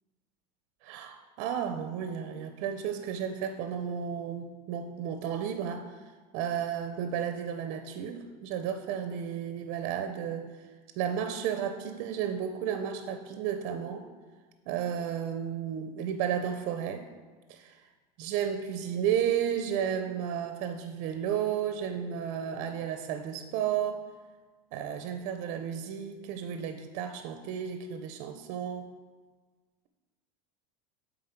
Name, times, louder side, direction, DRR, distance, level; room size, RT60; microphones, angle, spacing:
voice 1, 0.8-5.9 6.3-10.5 11.0-14.1 14.7-17.1 17.5-17.8 18.2-24.1 24.7-28.9, right 8 dB, 45° right, 7 dB, 0.4 m, -33 dB
7.7 x 3.8 x 4.4 m, 1.4 s
supercardioid pair, 170°, 18 cm